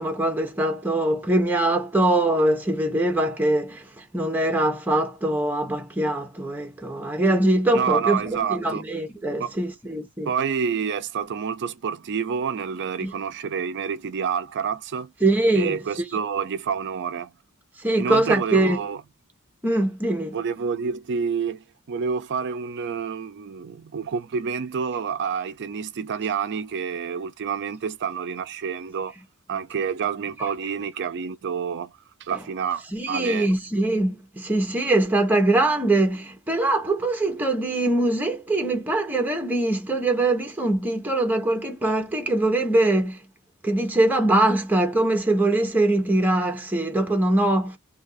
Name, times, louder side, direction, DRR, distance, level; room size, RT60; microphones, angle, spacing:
voice 1, 0.0-10.3 13.0-13.1 15.2-15.8 17.8-18.8 19.6-20.4 30.4-30.5 32.9-43.2 43.6-47.8, right 2 dB, 10° right, 0.8 m, -22 dB
voice 2, 7.7-8.8 9.4-9.5 10.3-15.1 15.5-17.3 18.0-19.0 20.3-29.1 29.5-31.9 32.2-33.5, right 6 dB, 55° right, 0.4 m, -28 dB
2.8 x 2.5 x 3.9 m
head